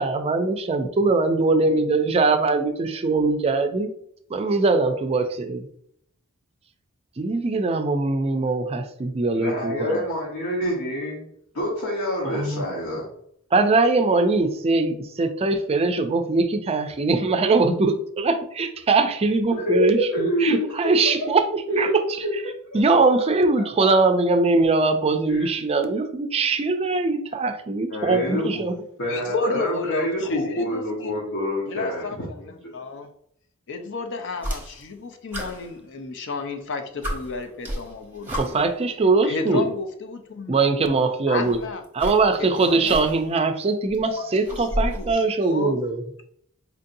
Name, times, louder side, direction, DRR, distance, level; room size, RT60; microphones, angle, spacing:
voice 1, 0.0-3.9 4.3-5.7 7.2-10.1 12.3-12.6 13.5-21.4 21.7-21.9 22.7-28.7 38.3-39.7 40.5-41.6 41.9-46.0, right 3 dB, 30° right, 7 dB, 0.4 m, -21 dB
voice 2, 9.3-11.2 11.5-13.1 19.5-20.7 21.2-21.3 21.7-22.0 22.2-22.3 22.7-22.8 25.3-25.6 27.9-28.5 29.0-32.0 32.4-32.7, equal, 85° left, -4 dB, 1.0 m, -26 dB
voice 3, 29.1-31.1 31.7-32.2 32.5-33.1 33.7-38.6 39.2-40.7 41.3-41.8 42.4-43.0 44.1-45.8, left 4 dB, 60° left, 6 dB, 0.5 m, -32 dB
sound 1, 34.4-35.0 35.3-36.4 36.7-36.8 37.0-38.8 39.8-39.9 41.3-43.4 43.7-45.1, equal, 10° right, 0.8 m, -32 dB
4.5 x 2.7 x 2.6 m, 0.68 s
head